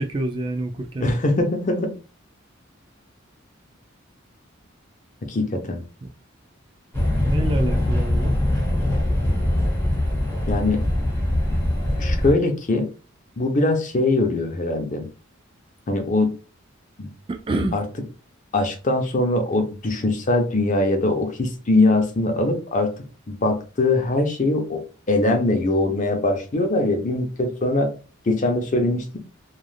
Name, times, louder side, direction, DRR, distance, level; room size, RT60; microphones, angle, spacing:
voice 1, 0.0-1.1 6.0-6.1 7.3-8.4 17.3-17.8, right 2 dB, 25° right, 4 dB, 0.3 m, -27 dB
voice 2, 1.0-1.9 5.3-5.8 10.5-10.8 12.0-12.9 13.4-15.1 15.9-16.3 17.0-17.1 17.7-17.8 18.5-22.9 23.3-27.9 28.3-29.2, left 2 dB, 40° left, 5 dB, 0.6 m, -22 dB
sound 1, 6.9-12.3, left 1 dB, 10° left, 0.9 m, -22 dB
3.2 x 2.4 x 2.3 m, 0.35 s
head